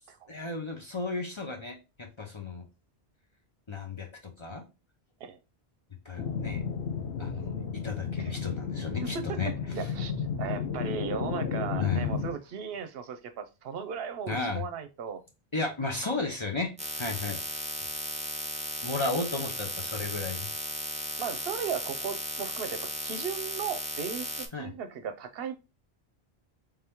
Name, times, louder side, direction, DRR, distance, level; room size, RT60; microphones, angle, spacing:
voice 1, 0.3-2.7 3.7-4.6 6.0-6.6 7.2-9.5 9.8-9.9 11.8-12.1 14.3-14.6 15.5-16.7 17.0-17.4 18.8-20.5 24.5-24.7, left 3 dB, 30° left, 0.6 m, -34 dB
sound 1, 6.2-12.3, left 6 dB, 85° left, 0.9 m, -33 dB
voice 2, 9.7-15.2 16.0-16.1 21.2-25.6, right 7 dB, 70° right, 0.8 m, -36 dB
sound 2, 16.8-24.5, right 2 dB, 10° right, 0.5 m, -35 dB
3.5 x 2.9 x 3.4 m
omnidirectional pair, 1.1 m